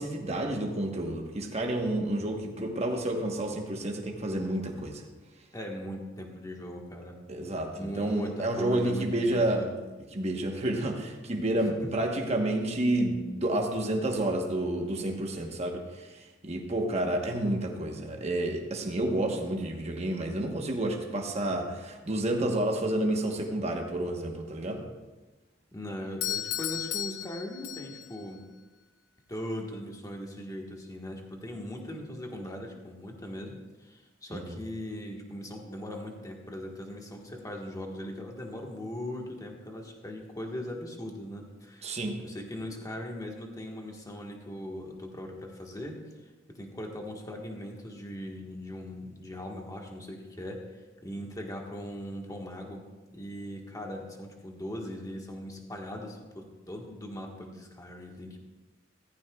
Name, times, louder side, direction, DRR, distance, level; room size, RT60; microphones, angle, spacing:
voice 1, 0.0-5.0 7.3-9.7 10.1-24.8 34.3-34.6 41.8-42.2, right 1 dB, 35° right, 2 dB, 1.2 m, -30 dB
voice 2, 5.5-7.2 7.8-9.7 11.8-11.9 25.7-28.4 29.3-46.0 46.5-50.6 51.0-52.8 53.1-58.4, equal, 20° left, 1 dB, 1.5 m, -39 dB
Doorbell, 26.2-28.2, left 11 dB, 85° left, 0.6 m, -34 dB
14.5 x 14.5 x 2.4 m, 1.2 s
head